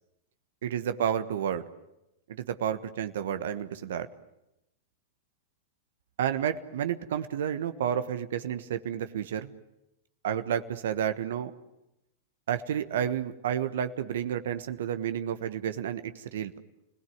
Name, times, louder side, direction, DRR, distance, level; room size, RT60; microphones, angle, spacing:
voice 1, 0.6-1.6 2.4-4.1 6.2-9.5 10.2-11.5 12.5-16.6, right 9 dB, 70° right, 10 dB, 1.3 m, -31 dB
29.5 x 18.0 x 9.5 m, 0.89 s
hypercardioid pair, 110°, 0 cm